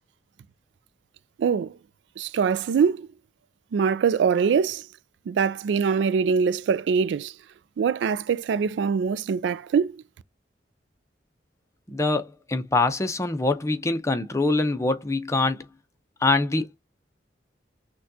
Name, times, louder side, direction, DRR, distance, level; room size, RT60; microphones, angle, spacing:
voice 1, 1.4-1.8 2.2-3.1 3.7-4.8 5.3-7.3 7.8-10.0, right 6 dB, 90° right, 0.3 m, -23 dB
voice 2, 11.9-15.7 16.2-16.8, left 2 dB, 15° left, 0.6 m, -24 dB
6.2 x 2.3 x 2.7 m
head